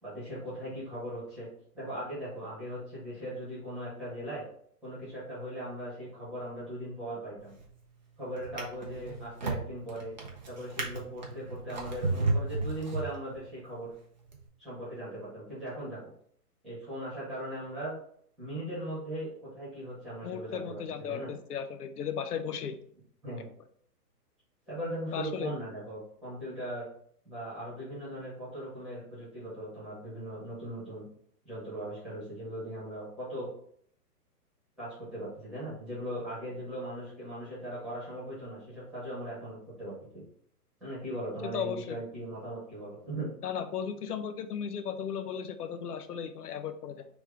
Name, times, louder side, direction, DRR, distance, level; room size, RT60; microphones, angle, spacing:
voice 1, 0.0-1.5 1.7-4.4 4.8-7.5 8.2-10.1 10.5-13.9 14.6-16.0 16.6-17.9 18.4-21.3 23.2-23.5 24.7-26.9 27.3-31.1 31.4-33.5 34.8-40.2 40.8-43.3, right 1 dB, ahead, -10 dB, 1.7 m, -39 dB
Drawer open or close, 7.4-7.8 8.4-13.6 14.3-14.4, right 3 dB, 30° right, 0.6 m, -34 dB
voice 2, 20.2-22.8 25.1-25.6 41.5-42.0 43.4-47.2, left 7 dB, 70° left, 9 dB, 0.8 m, -36 dB
3.5 x 3.2 x 4.8 m, 0.62 s
hypercardioid pair, 160°, 48 cm